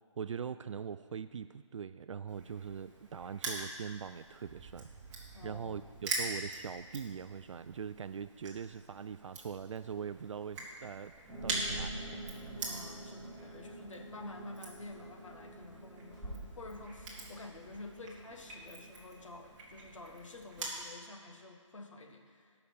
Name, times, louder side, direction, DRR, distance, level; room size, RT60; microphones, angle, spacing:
voice 1, 0.2-4.9 5.4-11.1 11.4-12.2, right 7 dB, 70° right, 11 dB, 0.4 m, -42 dB
Crushing, 2.3-20.8, right 2 dB, 15° right, 1.5 m, -44 dB
sound 1, 4.4-8.8, right 5 dB, 40° right, 1.0 m, -56 dB
voice 2, 5.3-5.9 11.3-11.7 12.7-22.5, left 3 dB, 75° left, 3 dB, 1.6 m, -50 dB
sound 2, 11.3-19.3, right 2 dB, 5° left, 2.3 m, -47 dB
13.0 x 5.8 x 6.7 m, 2.1 s
hypercardioid pair, 165°, 16 cm